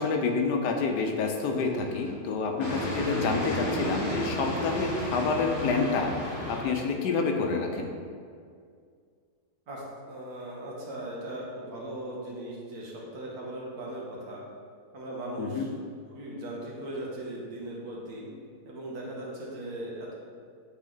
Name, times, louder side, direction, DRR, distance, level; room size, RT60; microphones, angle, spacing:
voice 1, 0.0-7.9 15.4-15.7, left 4 dB, 85° left, 3 dB, 1.3 m, -28 dB
sound 1, 1.5-2.1 2.6-6.6, equal, 35° left, 1.5 m, -32 dB
voice 2, 9.7-14.4 14.9-15.7 16.1-18.3 18.7-20.1, right 1 dB, 65° right, -3 dB, 1.7 m, -38 dB
8.5 x 4.1 x 3.9 m, 2.1 s
omnidirectional pair, 1.7 m